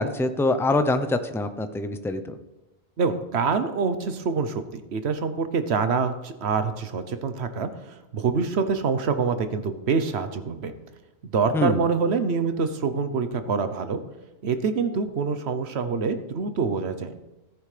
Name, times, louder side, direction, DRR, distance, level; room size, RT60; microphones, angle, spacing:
voice 1, 0.0-2.4 11.5-11.9, left 2 dB, 5° left, 9 dB, 0.4 m, -24 dB
voice 2, 3.0-10.7 11.3-14.0 14.4-17.1, right 5 dB, 75° right, 9 dB, 1.1 m, -26 dB
14.5 x 9.7 x 3.3 m, 1.0 s
omnidirectional pair, 1.1 m